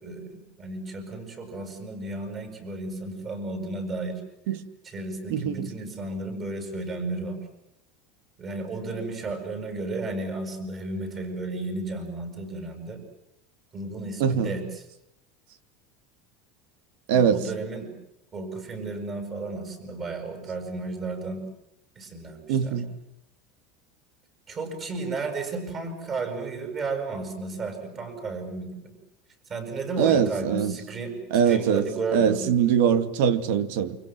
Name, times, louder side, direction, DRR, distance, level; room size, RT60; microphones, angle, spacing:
voice 1, 0.0-4.2 4.8-7.4 8.4-13.0 13.7-14.8 17.1-17.9 18.3-21.4 22.0-22.8 24.5-28.9 29.5-31.2 31.5-32.4, right 3 dB, 30° right, 7.4 m, -33 dB
voice 2, 5.3-5.7 14.2-14.5 17.1-17.4 22.5-22.9 30.0-30.8 31.3-34.0, right 8 dB, 75° right, 2.2 m, -22 dB
29.0 x 25.5 x 7.6 m
supercardioid pair, 145°, 0 cm